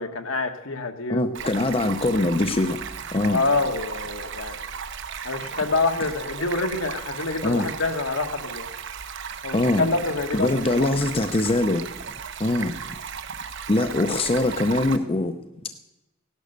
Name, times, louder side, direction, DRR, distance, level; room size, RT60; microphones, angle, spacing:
voice 1, 0.0-1.5 1.8-1.9 3.3-4.6 5.2-8.7 9.4-10.9, left 3 dB, 70° left, 7 dB, 1.5 m, -27 dB
voice 2, 1.1-2.8 3.1-3.4 7.4-7.7 9.5-9.9 10.3-11.9 12.4-12.7 13.7-15.3, left 2 dB, 25° left, 8 dB, 0.6 m, -22 dB
Stream, 1.3-15.0, right 7 dB, 60° right, 1.0 m, -35 dB
16.5 x 11.5 x 6.6 m, 0.98 s
head